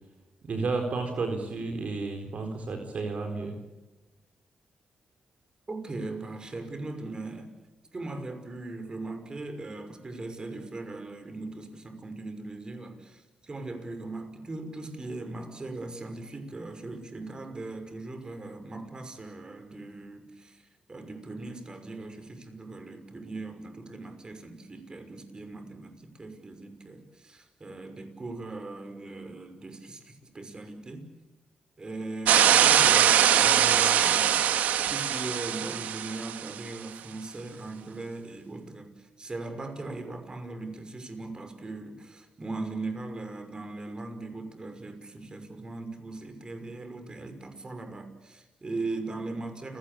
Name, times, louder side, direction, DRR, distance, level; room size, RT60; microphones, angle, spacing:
voice 1, 0.4-3.6, right 3 dB, 60° right, 4 dB, 4.2 m, -32 dB
voice 2, 5.7-7.5 7.9-31.1 31.8-34.5 34.9-49.8, right 2 dB, 30° right, 8 dB, 5.8 m, -39 dB
sound 1, 32.3-36.5, right 10 dB, 90° right, 1.6 m, -22 dB
30.0 x 18.0 x 8.7 m, 1.1 s
cardioid pair, 70°, 3 cm